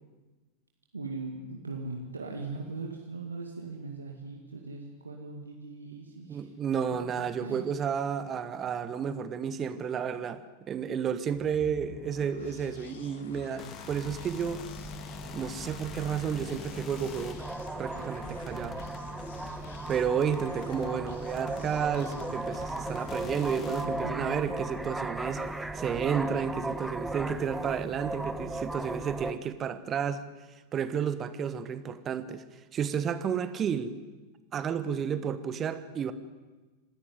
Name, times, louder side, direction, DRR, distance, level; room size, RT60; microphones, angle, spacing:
voice 1, 0.9-6.5 7.2-7.6 23.8-24.4, right 3 dB, 80° right, 1 dB, 2.1 m, -39 dB
voice 2, 6.3-14.7 15.3-17.4 17.8-18.8 19.9-25.4 25.7-30.3 30.7-32.4 32.7-34.0 34.5-36.1, right 7 dB, 25° right, 12 dB, 1.4 m, -31 dB
sound 1, 11.2-25.0, left 5 dB, 60° left, 2.0 m, -48 dB
sound 2, 13.5-23.9, left 6 dB, 30° left, 2.0 m, -48 dB
sound 3, 14.1-29.3, right 2 dB, 5° right, 1.2 m, -37 dB
27.0 x 12.5 x 9.7 m, 1.2 s
figure-of-eight pair, 90°, 0 cm